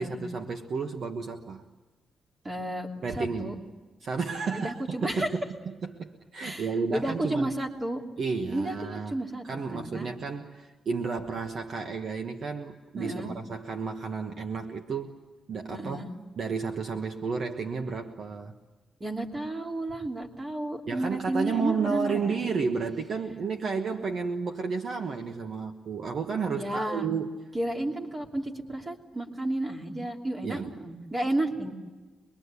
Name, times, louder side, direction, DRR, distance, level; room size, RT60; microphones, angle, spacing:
voice 1, 0.0-1.6 3.0-3.6 4.0-7.5 8.2-9.2 9.4-15.1 15.5-16.0 16.4-18.5 20.9-27.5 30.4-30.7, right 5 dB, 50° right, 5 dB, 1.4 m, -32 dB
voice 2, 2.4-3.5 4.5-5.3 6.4-8.0 8.5-10.1 13.0-13.4 15.7-16.1 19.0-22.6 26.6-27.1 27.5-31.7, right 1 dB, 20° right, 1 dB, 3.0 m, -32 dB
25.5 x 22.5 x 8.3 m, 1.3 s
wide cardioid pair, 170°, 0 cm